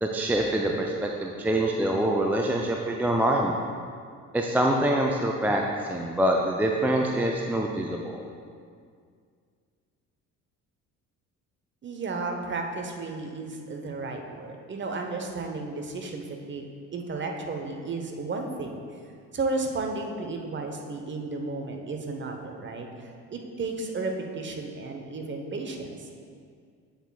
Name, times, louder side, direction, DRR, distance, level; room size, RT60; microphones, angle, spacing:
voice 1, 0.0-3.5 4.3-5.6 5.9-8.2, right 1 dB, 5° right, 0 dB, 0.3 m, -25 dB
voice 2, 11.8-16.6 16.9-18.8 19.3-26.2, right 3 dB, 25° right, 3 dB, 0.9 m, -33 dB
8.0 x 7.9 x 2.3 m, 2.2 s
figure-of-eight pair, 55°, 43 cm